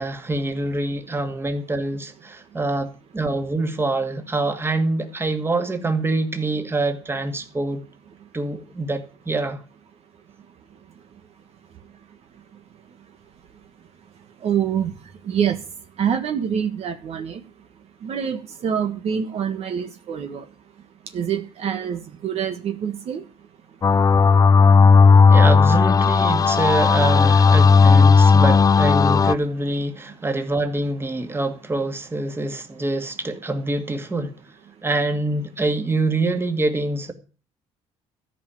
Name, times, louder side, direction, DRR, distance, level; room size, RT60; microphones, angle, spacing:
voice 1, 0.0-7.8 8.3-9.6 25.3-34.3 34.8-37.1, right 2 dB, 20° right, 2.2 m, -25 dB
voice 2, 14.4-14.9 15.3-15.6 16.0-17.4 18.0-20.4 21.1-23.2, right 8 dB, 60° right, 1.4 m, -25 dB
sound 1, 23.8-29.3, left 5 dB, 30° left, 0.5 m, -14 dB
13.5 x 5.6 x 8.9 m
cardioid pair, 105°, 12 cm